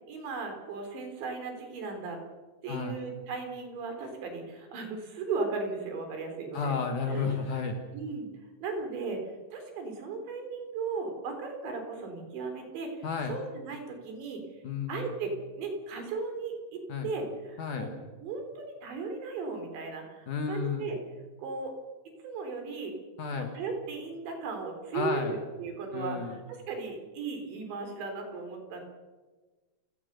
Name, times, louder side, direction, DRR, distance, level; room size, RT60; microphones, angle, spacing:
voice 1, 0.1-2.2 2.6-6.8 7.1-7.4 7.9-8.3 8.6-9.2 9.5-14.6 14.9-17.9 18.2-21.0 21.4-21.7 22.2-22.9 23.3-28.8, right 4 dB, 65° right, 5 dB, 5.8 m, -36 dB
voice 2, 6.5-7.8 13.0-13.4 14.6-15.1 16.9-17.1 17.6-17.9 20.3-20.9 23.2-23.5 24.9-25.4 25.9-26.4, left 5 dB, 55° left, 5 dB, 2.6 m, -32 dB
30.0 x 17.5 x 6.9 m, 1.3 s
omnidirectional pair, 5.6 m